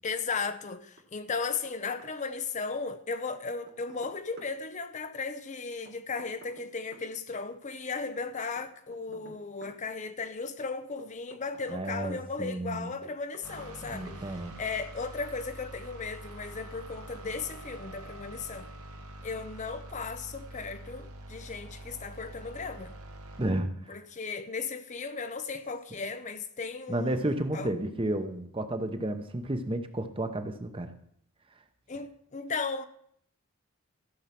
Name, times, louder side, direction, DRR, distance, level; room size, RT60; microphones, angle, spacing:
voice 1, 0.0-18.7 19.2-22.9 23.9-27.7 31.9-32.8, left 4 dB, 35° left, 0.6 m, -36 dB
Knock, 1.0-1.7 2.0-2.1 3.3-4.5 5.9-7.1 8.6-9.8 11.0-12.2 13.0-13.8 14.1-14.2, right 1 dB, 50° right, 1.7 m, -53 dB
voice 2, 11.7-12.9 13.9-14.6 23.4-23.9 26.9-30.9, right 1 dB, 25° right, 0.9 m, -32 dB
sound 1, 13.4-23.5, right 1 dB, 85° right, 1.7 m, -45 dB
14.5 x 7.3 x 5.9 m
head